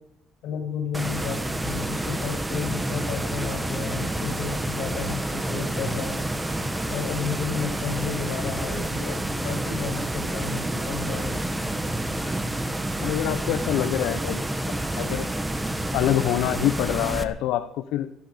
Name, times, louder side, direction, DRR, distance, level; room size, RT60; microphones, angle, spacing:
voice 1, 0.4-6.3 6.9-11.4, left 7 dB, 65° left, 3 dB, 7.5 m, -33 dB
sound 1, 0.9-17.2, right 1 dB, 10° right, 1.3 m, -29 dB
voice 2, 13.0-14.4 15.0-15.3 15.9-18.1, left 12 dB, 85° left, 10 dB, 0.9 m, -25 dB
18.0 x 13.5 x 5.2 m, 0.77 s
cardioid pair, 155°, 0 cm